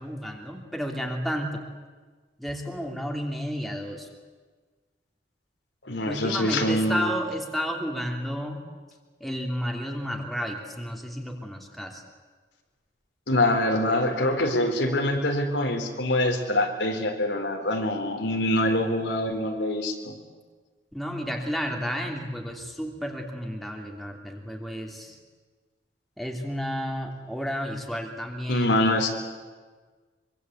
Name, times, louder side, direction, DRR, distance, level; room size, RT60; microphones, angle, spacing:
voice 1, 0.0-1.6 2.4-4.1 6.0-8.6 9.2-12.0 20.9-25.2 26.2-28.8, equal, ahead, 1 dB, 2.9 m, -32 dB
voice 2, 5.8-7.1 13.3-20.2 28.5-29.1, left 1 dB, 80° left, 4 dB, 4.1 m, -25 dB
25.0 x 24.5 x 8.3 m, 1.4 s
head